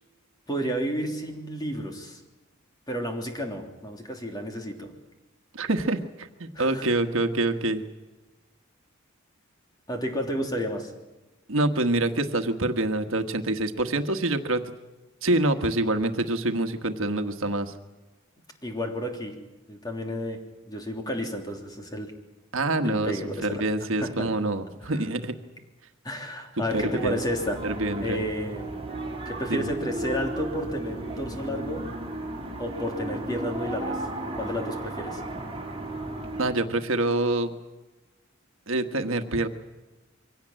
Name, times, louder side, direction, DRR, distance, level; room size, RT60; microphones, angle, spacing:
voice 1, 0.5-2.2 2.9-4.9 6.5-6.9 9.9-10.9 18.6-19.4 19.7-22.1 22.8-23.6 24.0-24.3 24.8-25.0 26.0-27.6 28.0-28.7 29.2-31.9 32.6-34.1 34.3-35.2, equal, 20° left, 2 dB, 3.3 m, -31 dB
voice 2, 5.5-7.8 11.5-14.6 15.2-17.7 22.5-25.3 26.7-27.1 27.6-28.2 29.5-29.7 36.4-37.5 38.7-39.5, right 2 dB, 70° right, 6 dB, 1.4 m, -26 dB
sound 1, 26.7-36.5, right 2 dB, 30° right, 4.0 m, -35 dB
24.0 x 17.5 x 9.0 m, 1.1 s
head